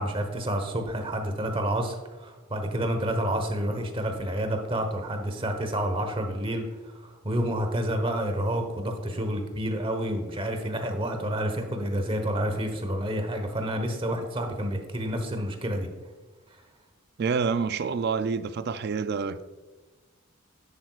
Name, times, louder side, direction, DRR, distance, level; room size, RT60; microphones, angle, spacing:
voice 1, 0.0-15.9, right 1 dB, 25° right, 1.1 m, -29 dB
voice 2, 17.2-19.4, right 5 dB, 50° right, 0.4 m, -27 dB
10.5 x 8.0 x 2.4 m
head